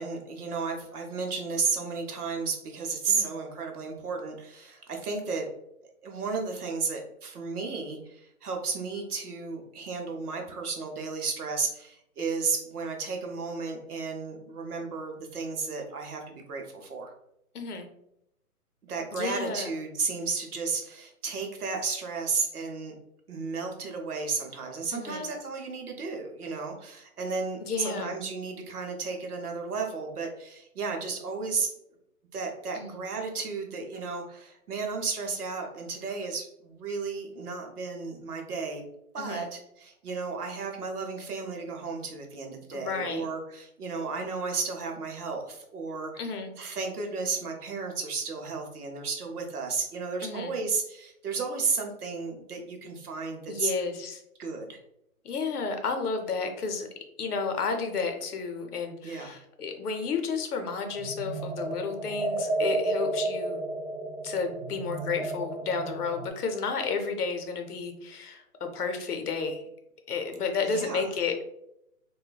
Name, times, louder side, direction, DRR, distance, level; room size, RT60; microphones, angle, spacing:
voice 1, 0.0-5.5 6.0-17.1 18.8-22.9 23.3-31.7 32.3-38.8 39.1-46.2 46.6-53.7 54.4-54.8 59.0-59.3 70.6-71.0, right 4 dB, 80° right, 2 dB, 0.8 m, -33 dB
voice 2, 17.5-17.9 19.1-19.7 24.9-25.3 27.6-28.1 32.7-33.0 39.2-39.5 42.7-43.3 46.2-46.5 50.2-50.5 53.5-54.2 55.2-56.9 57.2-63.6 64.2-69.7 70.1-71.5, left 5 dB, 80° left, 5 dB, 0.7 m, -32 dB
sound 1, 60.9-66.3, right 2 dB, 50° right, 0.9 m, -32 dB
3.1 x 2.2 x 2.3 m, 0.80 s
hypercardioid pair, 175°, 45 cm